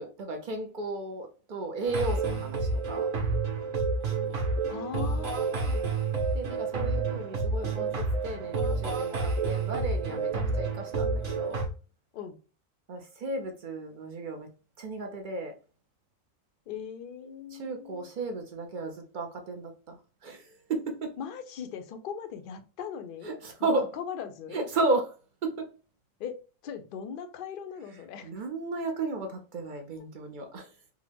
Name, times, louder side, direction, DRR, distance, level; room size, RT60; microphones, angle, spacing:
voice 1, 0.0-3.1 6.3-11.6 12.9-14.5 14.8-15.6 17.5-21.2 23.2-24.0 24.5-25.2 25.4-25.7 28.2-30.7, right 2 dB, 60° right, 0.5 m, -34 dB
sound 1, 1.8-11.7, right 3 dB, 75° right, 1.4 m, -29 dB
voice 2, 4.7-5.9 12.1-12.4 16.7-18.1 21.2-23.3 23.6-23.7 24.0-24.6 26.2-28.3, left 7 dB, 65° left, 0.5 m, -39 dB
3.5 x 2.0 x 3.2 m
omnidirectional pair, 1.4 m